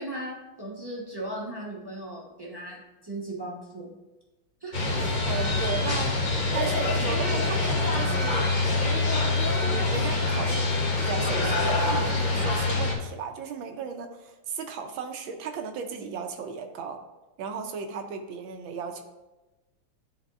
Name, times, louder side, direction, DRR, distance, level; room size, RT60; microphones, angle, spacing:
voice 1, 0.0-3.9 4.6-4.8, right 1 dB, 20° right, -4 dB, 0.7 m, -37 dB
sound 1, 4.7-12.9, left 2 dB, 50° left, 0.5 m, -25 dB
voice 2, 5.3-6.2 6.5-8.5 9.9-17.0 17.4-19.0, right 6 dB, 75° right, 6 dB, 1.4 m, -35 dB
10.5 x 3.9 x 2.4 m, 1.1 s
omnidirectional pair, 2.3 m